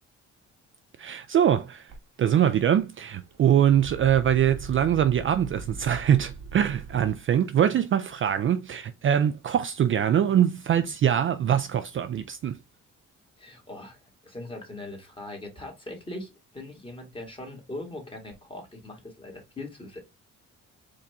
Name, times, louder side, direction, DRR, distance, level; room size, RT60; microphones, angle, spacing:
voice 1, 1.0-1.9 2.2-12.6, right 9 dB, 45° right, 0.4 m, -23 dB
sound 1, 1.9-2.0 2.4-2.9 3.2-7.2, right 4 dB, 65° right, 1.2 m, -41 dB
voice 2, 13.4-20.0, left 2 dB, 15° left, 2.0 m, -40 dB
4.7 x 2.6 x 3.4 m
cardioid pair, 90°, 30 cm